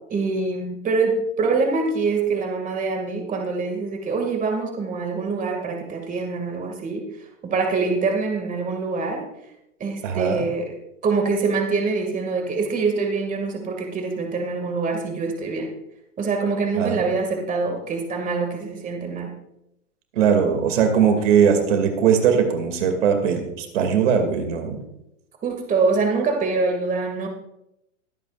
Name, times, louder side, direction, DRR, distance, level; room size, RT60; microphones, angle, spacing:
voice 1, 0.1-7.0 7.4-9.2 9.8-10.8 11.0-15.7 16.2-19.3 25.4-27.3, right 4 dB, 20° right, 3 dB, 2.2 m, -24 dB
voice 2, 10.0-10.4 16.8-17.0 20.2-24.8, right 7 dB, 70° right, 5 dB, 2.5 m, -20 dB
23.0 x 8.6 x 2.5 m, 0.82 s
hypercardioid pair, 125°, 38 cm